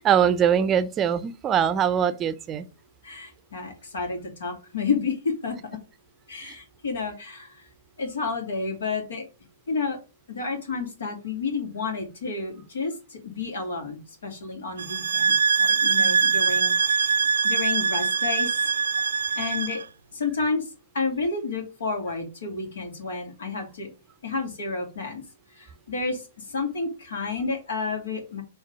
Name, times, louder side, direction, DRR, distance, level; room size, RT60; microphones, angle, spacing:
voice 1, 0.0-2.6 6.4-6.5 16.0-16.2, right 8 dB, 25° right, 0.6 m, -22 dB
voice 2, 3.0-5.6 6.3-7.6 8.0-9.2 9.7-10.0 10.3-17.2 17.4-18.7 19.4-19.8 20.1-20.6 20.9-23.9 24.2-25.2 25.5-28.4, left 4 dB, 75° left, 2.5 m, -30 dB
sound 1, 14.8-19.8, right 5 dB, 80° right, 0.3 m, -23 dB
6.6 x 3.4 x 4.7 m
hypercardioid pair, 115°, 0 cm